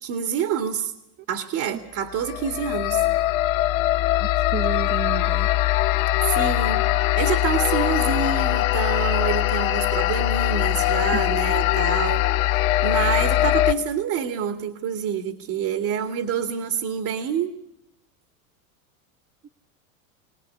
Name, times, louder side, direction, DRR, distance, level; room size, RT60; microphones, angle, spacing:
voice 1, 0.0-0.9 1.3-3.0 6.2-6.9 7.2-12.3 12.8-17.5, right 8 dB, 45° right, 2.4 m, -27 dB
sound 1, 2.2-13.7, left 15 dB, 65° left, 1.8 m, -21 dB
voice 2, 4.2-5.5 11.1-11.2 19.4-19.5, right 11 dB, 25° right, 0.9 m, -32 dB
23.0 x 18.5 x 8.5 m
hypercardioid pair, 110°, 43 cm